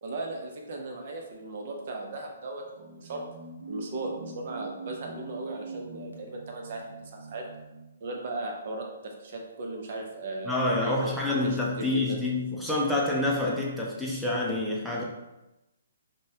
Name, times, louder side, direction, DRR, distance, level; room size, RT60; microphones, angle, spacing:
voice 1, 0.0-3.2 3.7-7.5 8.0-11.1 11.4-12.2, right 2 dB, 55° right, 1 dB, 0.7 m, -37 dB
sound 1, 2.6-7.9, right 3 dB, 85° right, 0.8 m, -43 dB
voice 2, 10.4-15.0, left 2 dB, ahead, -5 dB, 0.6 m, -27 dB
5.2 x 2.3 x 2.8 m, 0.98 s
hypercardioid pair, 135°, 0 cm